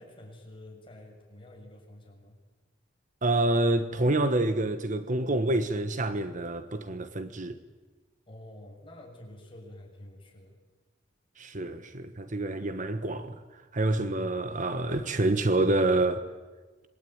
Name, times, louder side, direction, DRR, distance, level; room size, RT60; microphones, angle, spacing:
voice 1, 0.0-2.4 8.3-10.6, left 1 dB, 30° left, 7.0 m, -48 dB
voice 2, 3.2-7.6 11.4-13.4 13.7-16.3, right 2 dB, 45° right, 1.3 m, -27 dB
27.0 x 22.5 x 9.5 m
head